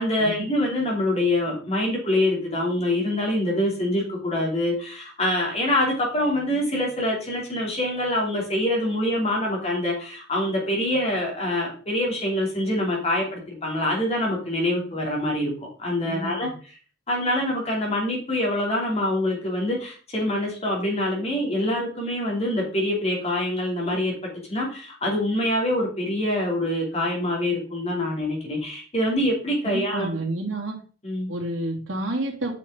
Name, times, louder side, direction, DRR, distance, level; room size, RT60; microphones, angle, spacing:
voice 1, 0.0-15.5 15.8-16.5 17.1-24.1 24.5-30.1 31.0-31.3, left 1 dB, 35° left, -1 dB, 2.9 m, -25 dB
voice 2, 16.1-16.5 29.6-30.8 31.3-32.5, right 2 dB, 90° right, -1 dB, 2.4 m, -29 dB
8.3 x 5.6 x 3.7 m, 0.39 s
head